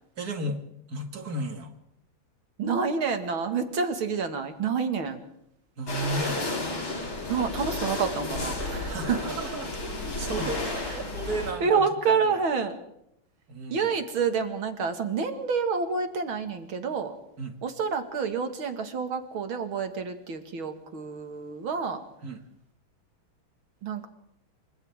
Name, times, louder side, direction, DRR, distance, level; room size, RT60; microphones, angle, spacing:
voice 1, 0.2-1.7 5.8-6.5 8.8-9.8 10.0-10.8 11.1-12.4 13.5-13.9 17.4-17.6 22.2-22.5, right 1 dB, 50° right, 6 dB, 2.6 m, -34 dB
voice 2, 2.6-5.2 7.3-9.2 10.9-11.0 11.6-12.8 13.7-17.1 17.6-22.0 23.8-24.1, right 5 dB, 85° right, 7 dB, 2.8 m, -28 dB
sound 1, 5.9-11.5, left 2 dB, 80° left, 5.2 m, -32 dB
28.5 x 25.5 x 3.7 m, 0.76 s
omnidirectional pair, 2.2 m